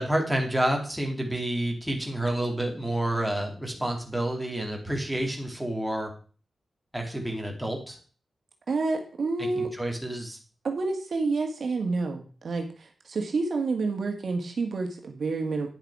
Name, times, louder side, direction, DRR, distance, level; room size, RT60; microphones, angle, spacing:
voice 1, 0.0-6.1 6.9-8.0 9.4-10.4, right 1 dB, ahead, 1 dB, 2.5 m, -29 dB
voice 2, 8.7-9.7 10.6-15.7, right 3 dB, 60° right, 4 dB, 1.7 m, -29 dB
10.0 x 6.9 x 4.8 m, 0.38 s
wide cardioid pair, 130°, 0 cm